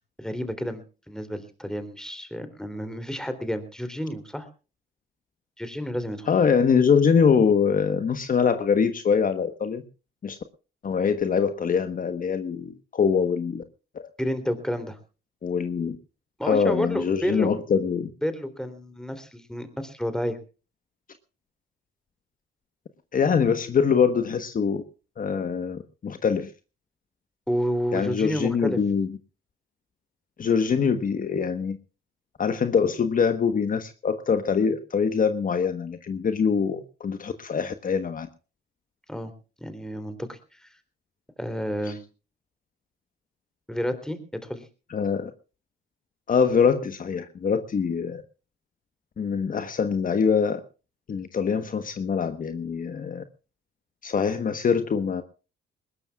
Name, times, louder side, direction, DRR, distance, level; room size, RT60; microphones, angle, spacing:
voice 1, 0.2-4.5 5.6-6.3 14.2-15.0 16.4-17.5 18.2-20.4 27.5-28.8 39.1-39.3 39.6-40.7 41.4-42.0 43.7-44.7, equal, 5° left, 10 dB, 3.4 m, -30 dB
voice 2, 6.3-9.8 10.2-10.4 10.8-13.6 13.9-14.1 15.4-16.0 16.4-18.1 23.1-24.8 25.2-26.5 27.9-29.1 30.4-31.8 32.4-38.3 41.9-42.0 44.9-45.3 46.3-48.2 49.2-50.6 51.1-53.2 54.0-55.2, left 6 dB, 45° left, 9 dB, 1.3 m, -24 dB
21.5 x 20.0 x 2.4 m, 0.34 s
cardioid pair, 90°, 20 cm